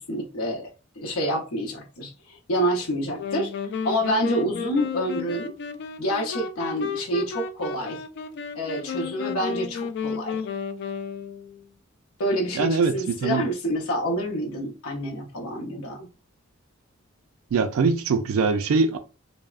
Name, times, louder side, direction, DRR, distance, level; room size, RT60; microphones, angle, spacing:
voice 1, 0.1-0.7 1.0-3.5 3.8-5.5 6.0-8.0 8.5-10.4 12.2-16.1, equal, 90° left, 0.7 m, -27 dB
sound 1, 3.2-11.6, left 6 dB, 55° left, 0.3 m, -32 dB
voice 2, 12.6-13.4 17.5-19.0, right 4 dB, 75° right, 0.3 m, -22 dB
3.3 x 2.0 x 2.4 m
head